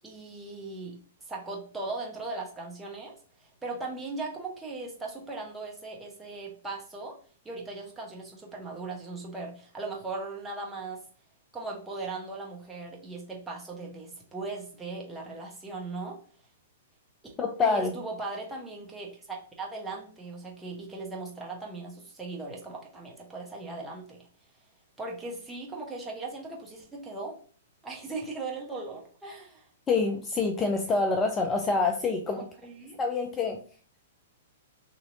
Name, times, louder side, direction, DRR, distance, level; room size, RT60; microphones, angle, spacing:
voice 1, 0.0-3.1 3.4-7.1 7.4-11.0 11.5-16.2 17.6-24.3 25.0-27.4 27.8-29.7 32.4-33.0, right 3 dB, 10° right, -3 dB, 1.0 m, -38 dB
voice 2, 17.4-17.9 29.9-32.4 33.0-33.6, left 4 dB, 20° left, 4 dB, 0.4 m, -26 dB
3.0 x 2.7 x 2.6 m, 0.43 s
hypercardioid pair, 115°, 0 cm